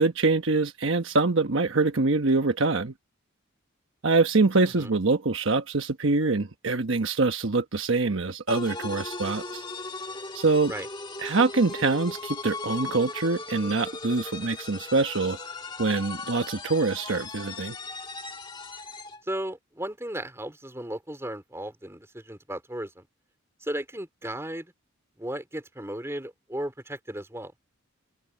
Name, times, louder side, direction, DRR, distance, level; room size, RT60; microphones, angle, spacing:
voice 1, 0.0-2.9 4.0-9.6 10.3-10.7 11.2-15.4 15.8-17.7, right 3 dB, 60° right, 1.2 m, -24 dB
sound 1, 8.5-19.2, left 3 dB, 20° left, 1.7 m, -38 dB
voice 2, 19.3-23.1 23.6-24.7 25.2-27.5, right 1 dB, 10° right, 3.8 m, -35 dB
head